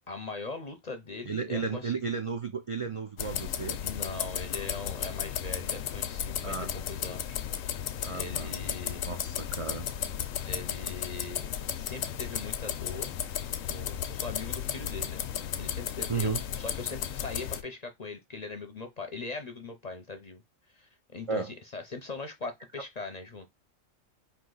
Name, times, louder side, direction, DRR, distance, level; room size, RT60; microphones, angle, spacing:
voice 1, 0.1-1.9 3.8-6.6 6.9-7.4 8.1-9.0 10.4-11.4 11.8-13.1 13.7-15.2 15.6-20.4 20.7-23.5, left 3 dB, 45° left, 0.6 m, -40 dB
voice 2, 1.3-3.8 6.4-6.7 8.0-8.5 9.0-9.9 16.1-16.4 21.3-21.5 22.4-22.5, right 5 dB, 55° right, 0.3 m, -33 dB
sound 1, 3.2-17.6, left 9 dB, 90° left, 1.0 m, -34 dB
4.8 x 2.7 x 3.8 m
omnidirectional pair, 1.3 m